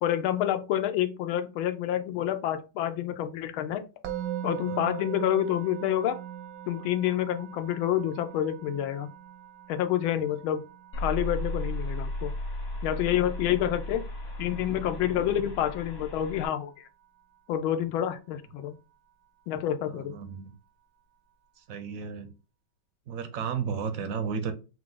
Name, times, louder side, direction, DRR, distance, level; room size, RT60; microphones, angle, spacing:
voice 1, 0.0-3.8 4.4-6.2 6.7-9.1 9.7-10.6 11.0-12.3 12.8-14.1 14.4-16.9 17.5-18.7 19.5-20.2, left 11 dB, 90° left, 8 dB, 1.4 m, -28 dB
Musical instrument, 4.0-15.2, right 11 dB, 80° right, 1.4 m, -41 dB
sound 1, 10.9-16.5, left 1 dB, 50° left, 0.8 m, -35 dB
voice 2, 19.9-20.5 21.6-22.3 23.1-24.5, right 6 dB, 65° right, 8 dB, 0.8 m, -33 dB
5.1 x 2.4 x 3.7 m, 0.31 s
omnidirectional pair, 2.2 m